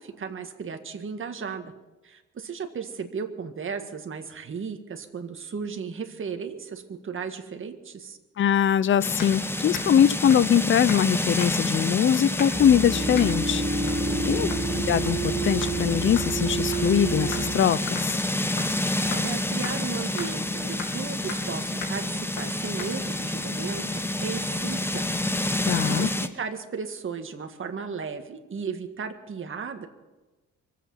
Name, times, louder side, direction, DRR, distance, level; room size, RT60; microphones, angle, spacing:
voice 1, 0.0-1.7 2.0-8.2 14.1-14.6 19.1-25.1 25.9-29.9, right 5 dB, 40° right, 1.8 m, -35 dB
voice 2, 8.4-13.6 14.3-14.5 14.9-18.2 25.7-26.1, left 9 dB, 40° left, 0.6 m, -22 dB
sound 1, 9.0-26.3, left 1 dB, 10° left, 1.0 m, -29 dB
sound 2, 9.2-9.4 9.7-10.0 10.3-10.5 10.9-11.1 11.4-11.7 12.4-12.7 13.1-13.3 13.9-14.0 14.5-14.7 15.1-15.3 15.6-15.7 16.2-17.5 17.9-18.1 18.6-18.8 19.1-19.3 19.6-19.8 20.2-20.3 20.8-21.0 21.3-21.5 21.8-22.0 22.4-22.5 22.8-22.9, left 5 dB, 85° left, 2.9 m, -38 dB
sound 3, 12.5-17.5, right 3 dB, 25° right, 4.9 m, -29 dB
24.5 x 8.4 x 5.7 m
cardioid pair, 90°, 30 cm